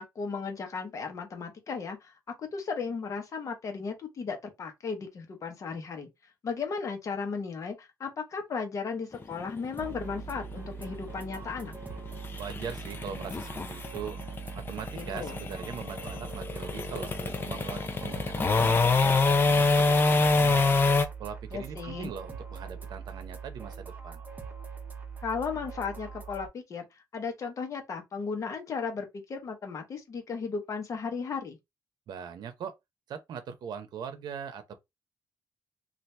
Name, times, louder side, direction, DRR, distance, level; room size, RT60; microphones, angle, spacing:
voice 1, 0.0-2.1 2.4-6.1 6.4-11.7 14.9-15.4 21.5-22.1 25.2-31.6, left 5 dB, 50° left, 1.0 m, -35 dB
sound 1, 9.1-21.0, left 3 dB, 30° left, 0.5 m, -26 dB
sound 2, 9.8-26.5, right 6 dB, 25° right, 0.7 m, -42 dB
voice 2, 12.4-14.2 14.7-18.8 19.2-20.8 21.2-24.2 32.1-32.7 33.1-34.7, right 7 dB, 75° right, 0.7 m, -41 dB
2.8 x 2.5 x 3.3 m
cardioid pair, 125°, 7 cm